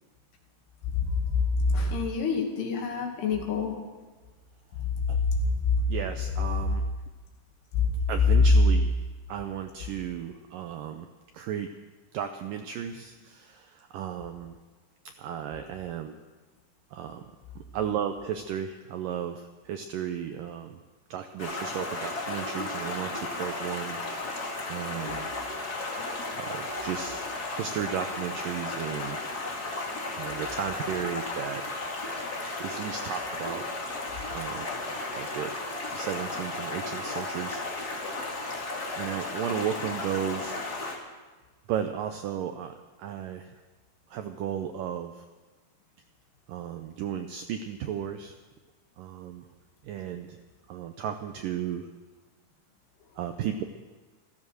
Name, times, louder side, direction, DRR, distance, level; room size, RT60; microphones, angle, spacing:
voice 1, 1.0-3.7 5.2-5.6 7.7-7.8, left 4 dB, 80° left, 1 dB, 4.3 m, -27 dB
voice 2, 5.9-6.8 8.1-8.9 9.3-11.1 11.3-11.7 12.1-14.6 15.1-16.2 16.9-20.8 21.1-24.0 24.7-25.3 26.3-27.3 27.5-29.2 30.1-31.6 32.6-33.7 34.3-34.7 35.2-35.5 35.9-37.6 39.0-40.6 41.7-43.6 44.1-45.3 46.5-48.4 49.0-49.5 49.8-50.4 50.7-51.9 53.2-53.6, right 9 dB, 80° right, 7 dB, 1.9 m, -34 dB
Stream, 21.4-41.0, left 2 dB, 30° left, 1.8 m, -34 dB
15.0 x 14.5 x 6.4 m, 1.3 s
omnidirectional pair, 4.7 m